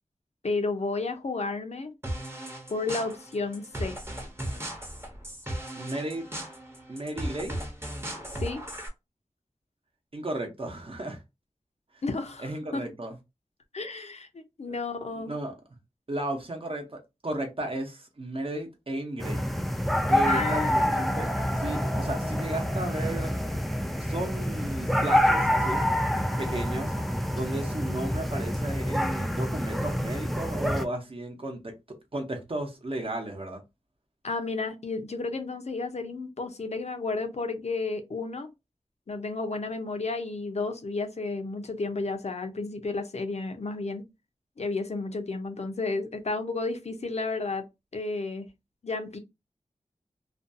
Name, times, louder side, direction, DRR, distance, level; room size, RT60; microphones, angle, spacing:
voice 1, 0.4-1.9 2.7-4.0 8.3-8.6 12.0-12.8 13.7-15.3 20.3-20.9 34.2-38.5 39.1-44.0 44.6-47.6 47.9-48.5 48.8-49.2, left 3 dB, 60° left, 0.5 m, -32 dB
sound 1, 2.0-8.9, right 1 dB, 20° right, 0.8 m, -37 dB
voice 2, 5.8-6.3 6.9-7.6 10.1-11.2 12.4-13.2 14.7-14.8 15.2-15.5 16.1-19.5 20.1-23.4 24.0-25.8 26.4-26.9 27.3-33.6, right 1 dB, 45° right, 0.7 m, -34 dB
sound 2, 19.2-30.8, equal, ahead, 0.3 m, -27 dB
2.5 x 2.3 x 2.6 m
wide cardioid pair, 70°, 13 cm